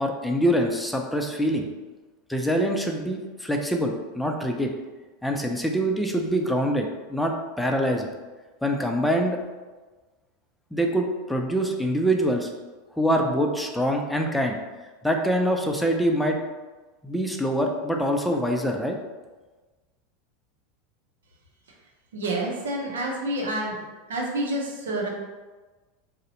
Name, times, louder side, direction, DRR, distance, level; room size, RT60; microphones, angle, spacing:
voice 1, 0.0-1.7 2.3-4.7 5.2-8.1 8.6-9.4 10.7-12.5 13.0-14.6 15.0-16.4 17.0-19.0, equal, 5° left, 2 dB, 0.4 m, -24 dB
voice 2, 22.1-23.8 24.1-25.1, right 1 dB, 80° right, -1 dB, 0.6 m, -28 dB
2.6 x 2.1 x 3.9 m, 1.3 s
hypercardioid pair, 90°, 0 cm